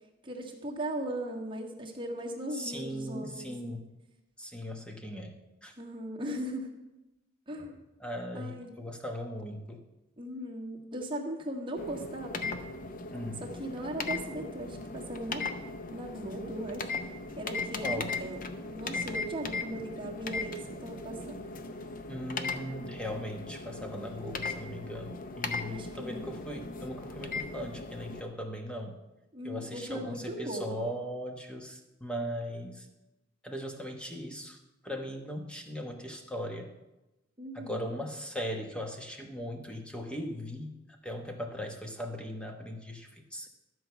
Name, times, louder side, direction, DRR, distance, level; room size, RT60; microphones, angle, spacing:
voice 1, 0.2-3.5 5.8-6.7 7.5-7.8 8.3-8.7 10.2-12.5 13.4-15.4 15.9-16.9 17.3-21.5 25.6-26.3 29.3-30.8 37.4-37.9, right 1 dB, 25° right, -2 dB, 1.6 m, -38 dB
voice 2, 2.5-3.9 4.4-5.7 7.6-7.7 8.0-9.8 13.1-13.4 17.8-18.2 22.1-29.0 29.4-32.9 33.4-34.6 34.8-36.7 37.5-40.8 41.0-43.5, equal, 5° left, 3 dB, 1.0 m, -39 dB
sound 1, 11.8-28.2, left 3 dB, 45° left, 0.6 m, -38 dB
12.5 x 4.7 x 6.9 m, 1.0 s
head